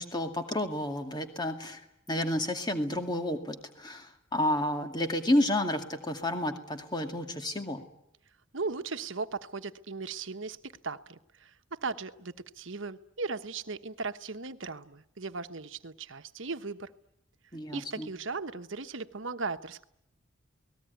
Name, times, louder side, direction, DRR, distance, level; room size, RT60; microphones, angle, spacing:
voice 1, 0.0-1.8 2.1-7.8 17.5-18.1, left 1 dB, 20° left, 5 dB, 2.3 m, -30 dB
voice 2, 8.5-16.9 17.7-19.8, right 4 dB, 70° right, 9 dB, 1.2 m, -37 dB
28.5 x 19.0 x 9.4 m, 0.80 s
head